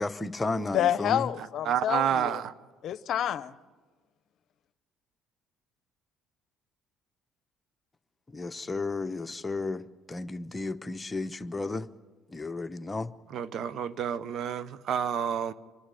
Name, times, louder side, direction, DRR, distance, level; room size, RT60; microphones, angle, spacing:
voice 1, 0.0-1.3 8.3-11.9 12.3-13.1, left 3 dB, 20° left, 1.0 m, -33 dB
voice 2, 0.7-2.4 2.8-3.5, left 10 dB, 60° left, 0.8 m, -28 dB
voice 3, 1.6-2.5 13.3-15.5, right 9 dB, 60° right, 1.0 m, -29 dB
26.0 x 11.5 x 9.9 m
supercardioid pair, 65°, 0 cm